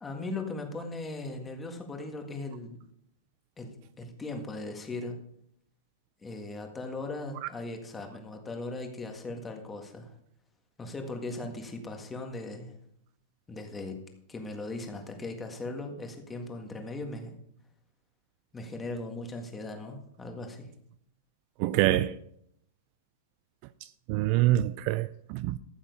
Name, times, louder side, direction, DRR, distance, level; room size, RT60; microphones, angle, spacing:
voice 1, 0.0-2.8 3.6-5.2 6.2-10.1 10.8-12.7 13.5-14.0 14.3-17.4 18.5-20.7, left 2 dB, 10° left, 1.7 m, -38 dB
voice 2, 21.6-22.1 24.1-25.5, right 14 dB, 40° right, 0.4 m, -25 dB
14.0 x 7.3 x 5.4 m
supercardioid pair, 160°, 0 cm